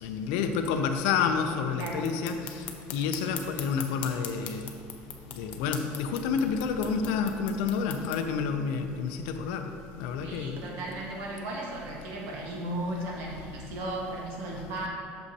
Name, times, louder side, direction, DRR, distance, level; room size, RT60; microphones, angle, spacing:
voice 1, 0.0-2.7 2.9-4.7 5.4-9.7 10.0-10.6, left 6 dB, 85° left, 6 dB, 0.4 m, -29 dB
sound 1, 1.8-8.2, left 8 dB, 40° left, 0.6 m, -42 dB
voice 2, 1.8-2.1 10.2-14.9, right 1 dB, 60° right, -3 dB, 1.4 m, -35 dB
sound 2, 6.8-7.4 8.8-9.1 10.6-11.1 11.4-11.5 12.7-12.8, right 4 dB, 40° right, 0.5 m, -47 dB
8.1 x 6.3 x 2.8 m, 2.3 s
cardioid pair, 175°, 4 cm